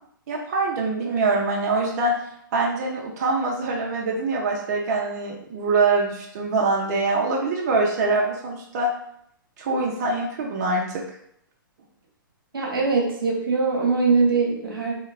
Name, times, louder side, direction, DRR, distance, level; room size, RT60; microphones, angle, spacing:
voice 1, 0.3-2.1 2.5-8.9 9.6-11.0, right 3 dB, 45° right, -1 dB, 0.5 m, -24 dB
voice 2, 12.5-14.9, right 4 dB, 85° right, -1 dB, 0.8 m, -22 dB
3.0 x 2.0 x 2.3 m, 0.71 s
hypercardioid pair, 130°, 12 cm